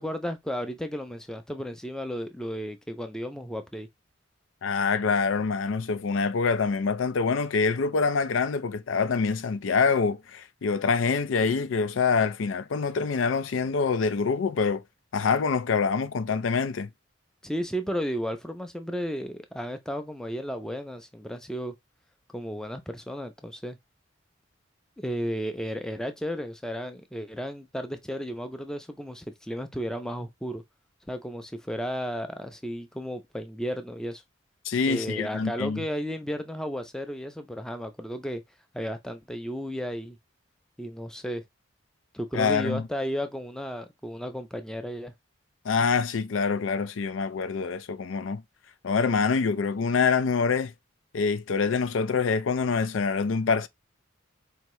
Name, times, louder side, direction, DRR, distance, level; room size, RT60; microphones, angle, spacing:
voice 1, 0.0-3.9 17.4-21.7 22.3-23.8 25.0-30.6 31.1-34.2 34.9-38.4 38.7-40.2 40.8-41.4 42.1-45.1, equal, 5° left, 0.5 m, -33 dB
voice 2, 4.6-14.8 15.1-16.9 34.6-35.8 42.3-42.8 45.6-48.4 48.8-50.7 51.1-53.7, left 5 dB, 80° left, 0.5 m, -25 dB
4.5 x 2.8 x 3.0 m
head